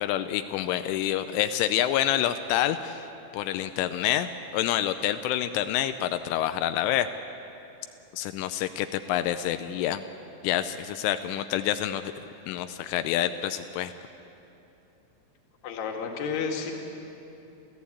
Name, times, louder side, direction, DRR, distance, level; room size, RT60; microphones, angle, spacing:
voice 1, 0.0-3.0 3.3-7.1 8.1-10.0 10.4-12.1 12.5-13.9, left 12 dB, 85° left, 9 dB, 3.1 m, -27 dB
voice 2, 15.6-16.7, left 6 dB, 55° left, 2 dB, 3.2 m, -31 dB
28.5 x 14.5 x 8.5 m, 2.9 s
omnidirectional pair, 5.5 m